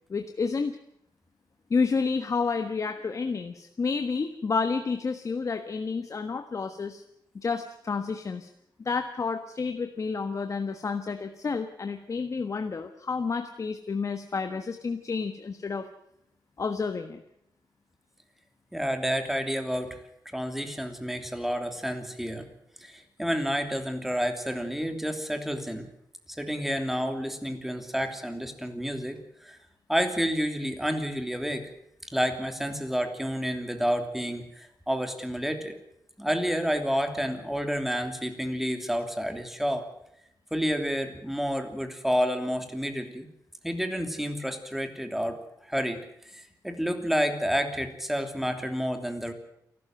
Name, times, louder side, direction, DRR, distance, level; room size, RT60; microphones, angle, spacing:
voice 1, 0.1-0.8 1.7-7.0 7.4-8.5 8.8-15.9 16.6-17.2, left 4 dB, 45° left, 7 dB, 1.4 m, -30 dB
voice 2, 18.7-20.0 20.3-22.5 22.8-25.9 26.4-29.6 29.9-31.7 32.1-35.8 36.2-39.8 40.5-43.3 43.6-46.0 46.3-49.3, equal, 5° right, 6 dB, 3.0 m, -30 dB
28.0 x 13.0 x 7.8 m, 0.78 s
wide cardioid pair, 120°, 7 cm